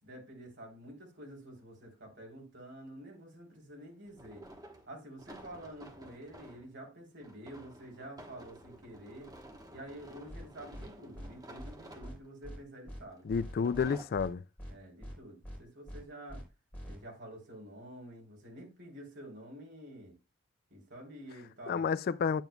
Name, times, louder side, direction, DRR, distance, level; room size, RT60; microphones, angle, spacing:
voice 1, 0.0-4.5 4.9-9.3 9.7-13.3 14.7-16.4 16.9-20.1 20.7-21.8, right 1 dB, 55° right, 3.4 m, -49 dB
sound 1, 1.4-1.5 4.1-6.7 7.2-12.4 13.3-14.1, right 1 dB, 20° right, 1.1 m, -52 dB
sound 2, 10.3-10.4 10.7-10.9 11.1-11.3 11.6-11.7 12.0-12.2 12.4-12.6 12.9-13.0 13.3-13.9 14.1-14.3 14.6-14.7 15.0-15.2 15.4-15.6 15.9-16.0 16.3-16.4 16.7-16.9, equal, 5° left, 4.3 m, -44 dB
voice 2, 13.3-14.4 21.7-22.4, left 6 dB, 45° left, 0.3 m, -30 dB
9.2 x 9.0 x 2.3 m
head